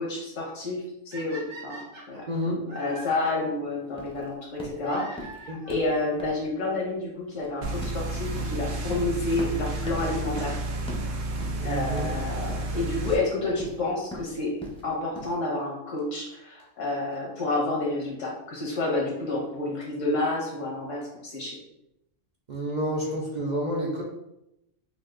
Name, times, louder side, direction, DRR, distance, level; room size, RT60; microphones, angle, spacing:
voice 1, 0.0-5.3 5.7-10.6 11.6-14.5 14.8-21.6, left 2 dB, 80° left, -3 dB, 1.5 m, -29 dB
sound 1, 1.1-3.3 4.8-5.9 6.8-6.9 7.6-7.7 7.9-8.0 9.9-10.1 12.9-13.0 14.1-14.2 15.6-15.7 16.0-16.1 16.3-16.4 16.6-16.7 16.9-17.0 17.1-17.2 17.4-17.5, right 1 dB, 65° right, 1.4 m, -43 dB
voice 2, 2.3-2.6 5.5-5.6 11.6-12.1 22.5-24.0, equal, 45° right, -2 dB, 0.6 m, -29 dB
sound 2, 4.0-15.4, left 1 dB, 5° left, 0.6 m, -42 dB
sound 3, 7.6-13.2, right 2 dB, 85° right, 1.1 m, -31 dB
5.8 x 2.5 x 2.5 m, 0.85 s
omnidirectional pair, 1.3 m